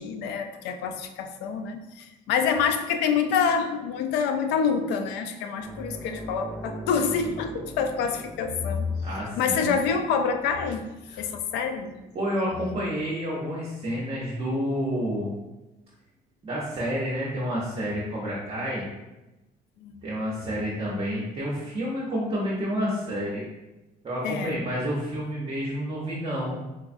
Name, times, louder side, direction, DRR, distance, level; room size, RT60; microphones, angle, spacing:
voice 1, 0.0-8.9 9.4-10.8 11.2-11.9 19.8-20.0 24.2-24.6, left 6 dB, 85° left, 6 dB, 0.4 m, -27 dB
sound 1, 5.6-14.5 14.8-15.0 17.1-17.2, right 1 dB, ahead, 1.0 m, -43 dB
voice 2, 9.0-9.7 11.1-11.2 12.1-15.3 16.4-18.8 20.0-23.4 24.0-26.6, equal, 35° right, -6 dB, 0.8 m, -29 dB
4.0 x 2.4 x 2.5 m, 1.0 s
cardioid pair, 110°, 17 cm